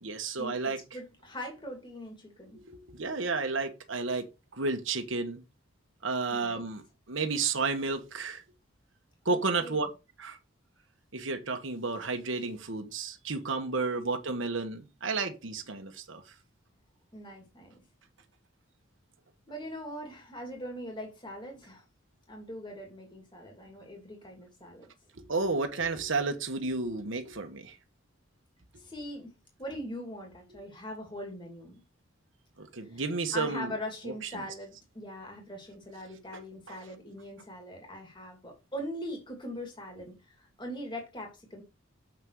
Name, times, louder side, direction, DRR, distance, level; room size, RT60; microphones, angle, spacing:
voice 1, 0.0-0.8 2.7-5.4 6.0-8.4 9.2-9.9 10.2-10.4 11.1-16.2 25.3-27.8 32.6-33.7 34.3-34.4 36.7-36.8, right 4 dB, 70° right, 1.3 m, -32 dB
voice 2, 0.9-2.6 6.3-6.7 9.3-9.9 17.1-17.8 19.5-21.8 22.3-24.9 28.8-29.3 29.6-31.8 32.8-33.0 33.3-41.6, equal, 25° left, 2.5 m, -41 dB
7.4 x 5.9 x 4.7 m
head